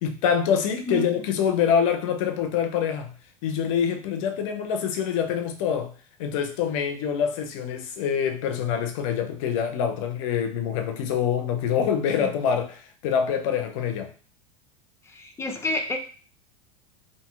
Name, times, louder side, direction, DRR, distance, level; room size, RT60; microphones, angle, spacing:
voice 1, 0.0-3.1 3.4-5.9 6.2-14.1, left 8 dB, 65° left, 0.5 m, -25 dB
voice 2, 0.9-1.3 12.2-12.3 15.1-16.0, left 1 dB, 15° left, 0.5 m, -30 dB
2.8 x 2.7 x 2.3 m
hypercardioid pair, 95°, 18 cm